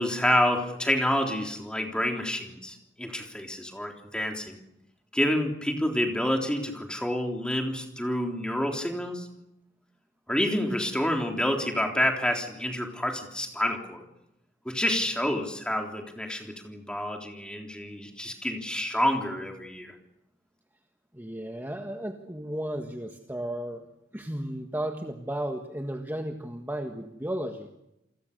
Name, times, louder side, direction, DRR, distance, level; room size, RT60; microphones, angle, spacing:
voice 1, 0.0-4.6 5.1-9.3 10.3-14.0 14.7-20.0, left 1 dB, 5° left, 2 dB, 3.5 m, -28 dB
voice 2, 21.1-23.9 24.1-27.8, right 1 dB, 10° right, 4 dB, 1.6 m, -34 dB
29.0 x 21.5 x 6.8 m, 0.87 s
head